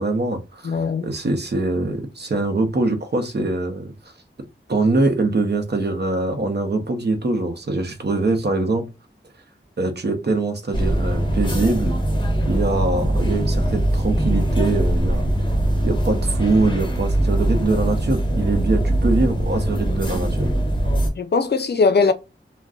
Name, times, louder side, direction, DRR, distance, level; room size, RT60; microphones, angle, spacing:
voice 1, 0.0-3.9 4.7-8.9 9.8-11.9 12.5-15.3 15.8-20.5, right 2 dB, 55° right, 0.7 m, -23 dB
voice 2, 0.6-1.1 12.4-12.5 21.2-22.1, left 4 dB, 55° left, 0.5 m, -19 dB
sound 1, 10.7-21.1, right 1 dB, 25° left, 1.0 m, -21 dB
2.4 x 2.2 x 3.6 m
wide cardioid pair, 65°, 20 cm